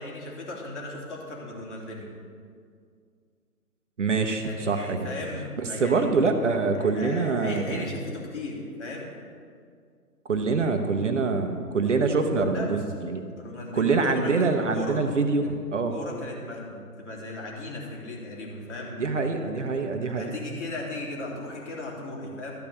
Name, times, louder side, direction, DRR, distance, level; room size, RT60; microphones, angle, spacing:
voice 1, 0.0-2.1 4.4-6.1 6.8-9.1 12.4-12.8 13.4-15.0 15.9-19.7 20.1-22.5, left 2 dB, 45° left, -2 dB, 3.2 m, -36 dB
voice 2, 4.0-5.1 5.6-7.9 10.3-13.2 13.7-16.0 19.0-20.3, right 4 dB, 50° right, 6 dB, 1.0 m, -25 dB
13.0 x 5.3 x 8.3 m, 2.1 s
figure-of-eight pair, 145°, 47 cm